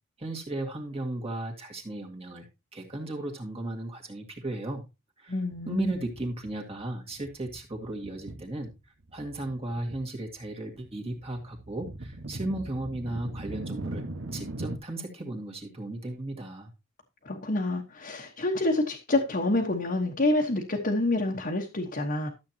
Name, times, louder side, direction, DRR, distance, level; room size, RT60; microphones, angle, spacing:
voice 1, 0.2-2.4 2.7-4.8 5.2-5.3 5.7-8.7 9.1-14.0 14.3-16.7, right 1 dB, 30° right, 2.0 m, -35 dB
voice 2, 5.3-5.9 17.2-22.3, left 2 dB, 45° left, 1.3 m, -27 dB
sound 1, 5.5-6.8 7.1-8.8 9.1-10.0 10.3-14.8, right 1 dB, 70° right, 1.3 m, -40 dB
13.0 x 7.6 x 2.9 m
head